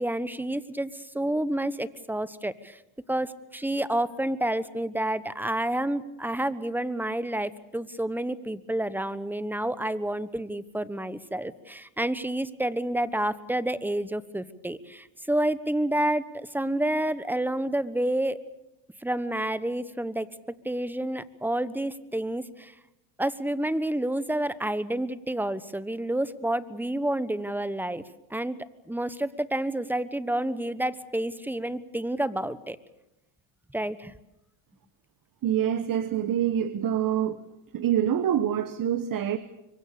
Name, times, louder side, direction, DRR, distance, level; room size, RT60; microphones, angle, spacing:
voice 1, 0.0-2.8 3.1-18.4 19.0-20.3 20.6-22.7 23.2-28.0 28.3-28.6 28.9-32.8 33.7-34.1, right 1 dB, 5° right, 15 dB, 1.1 m, -29 dB
voice 2, 35.4-37.4 37.7-39.4, right 10 dB, 40° right, 13 dB, 1.2 m, -26 dB
25.5 x 23.5 x 6.8 m, 0.91 s
supercardioid pair, 95°, 50 cm